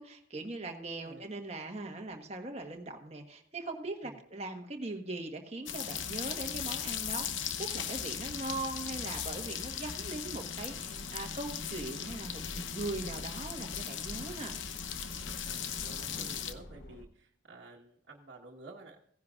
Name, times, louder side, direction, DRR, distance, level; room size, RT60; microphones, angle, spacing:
voice 1, 0.0-14.5, right 2 dB, 35° right, 3 dB, 1.3 m, -40 dB
sound 1, 5.7-16.5, left 8 dB, 75° left, 0.8 m, -38 dB
sound 2, 5.8-10.8 14.0-14.3, left 3 dB, 30° left, 0.4 m, -50 dB
sound 3, 10.5-17.1, equal, 60° left, 1.0 m, -47 dB
voice 2, 15.4-19.0, right 2 dB, 65° right, -3 dB, 1.4 m, -51 dB
16.5 x 10.5 x 2.4 m, 0.67 s
head